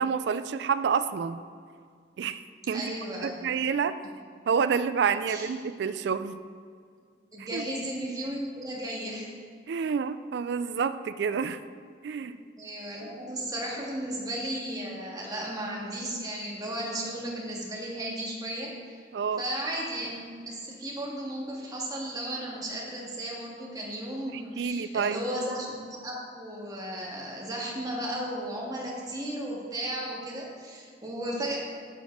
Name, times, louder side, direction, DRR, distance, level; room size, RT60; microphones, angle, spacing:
voice 1, 0.0-1.4 2.2-3.0 3.2-4.0 4.5-6.4 7.5-7.6 9.7-11.6 12.0-12.4 19.1-19.4 24.3-25.2, right 6 dB, 65° right, 13 dB, 0.3 m, -28 dB
voice 2, 2.7-3.6 5.3-5.5 7.3-9.3 12.6-19.0 19.4-31.6, right 1 dB, 20° right, -3 dB, 1.7 m, -35 dB
7.5 x 7.1 x 5.2 m, 2.1 s
head